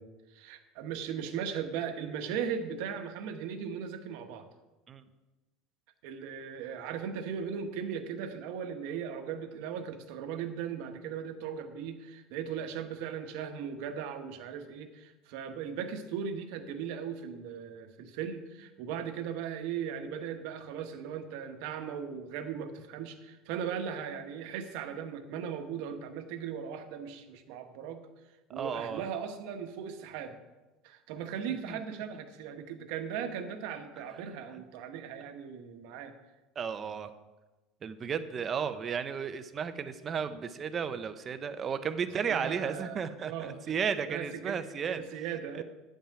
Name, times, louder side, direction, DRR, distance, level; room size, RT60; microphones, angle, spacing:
voice 1, 0.0-4.4 6.0-28.1 28.5-30.4 30.8-36.1 42.3-43.0 43.3-43.6 44.1-44.6 44.9-45.6, right 7 dB, 70° right, 6 dB, 1.2 m, -38 dB
voice 2, 28.5-29.0 31.7-31.8 36.6-37.1 37.8-45.0 45.5-45.6, right 6 dB, 25° right, 10 dB, 0.6 m, -34 dB
10.0 x 5.7 x 7.6 m, 1.1 s
cardioid pair, 155°, 0 cm